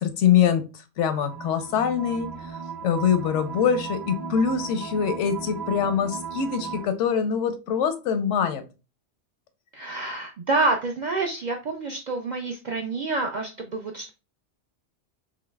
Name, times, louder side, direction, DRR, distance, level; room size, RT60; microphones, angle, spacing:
voice 1, 0.0-8.6, left 8 dB, 85° left, 9 dB, 0.9 m, -24 dB
sound 1, 1.0-6.9, right 5 dB, 25° right, 0.7 m, -36 dB
voice 2, 9.7-14.1, right 3 dB, 60° right, 2 dB, 0.4 m, -27 dB
3.9 x 3.0 x 2.2 m, 0.30 s
omnidirectional pair, 1.2 m